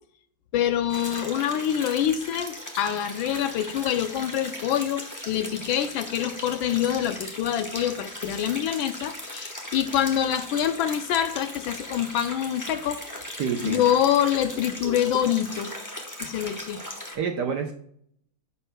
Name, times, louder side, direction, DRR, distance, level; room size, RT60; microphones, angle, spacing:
voice 1, 0.5-13.0 13.6-15.7 16.2-16.8, left 10 dB, 75° left, 9 dB, 1.2 m, -26 dB
sound 1, 0.9-17.2, left 1 dB, 25° left, 0.4 m, -38 dB
voice 2, 13.4-13.8 16.2-16.3 17.1-17.7, right 6 dB, 70° right, 4 dB, 1.0 m, -28 dB
11.0 x 7.0 x 2.2 m, 0.66 s
omnidirectional pair, 2.4 m